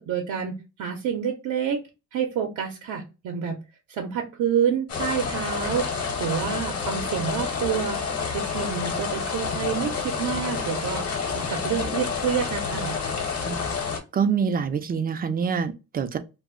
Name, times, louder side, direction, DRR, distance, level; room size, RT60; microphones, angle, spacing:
voice 1, 0.0-1.8 2.1-3.6 3.9-5.9 6.2-8.0 8.3-11.1 11.3-13.0, right 8 dB, 80° right, 0.6 m, -28 dB
sound 1, 4.9-14.0, left 5 dB, 55° left, 0.9 m, -29 dB
voice 2, 14.1-16.2, right 6 dB, 30° right, 0.4 m, -25 dB
2.1 x 2.1 x 3.6 m
cardioid pair, 90°, 30 cm